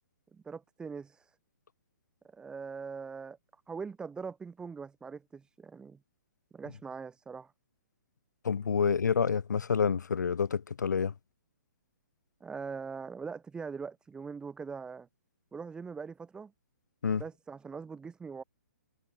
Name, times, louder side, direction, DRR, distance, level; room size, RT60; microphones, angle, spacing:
voice 1, 0.3-1.3 2.3-3.4 3.7-6.0 6.5-7.5 12.4-15.1 15.5-16.5 17.2-18.4, right 5 dB, 10° right, 5.8 m, -42 dB
voice 2, 8.4-11.1 17.0-17.2, left 6 dB, 85° left, 1.0 m, -28 dB
hypercardioid pair, 150°, 9 cm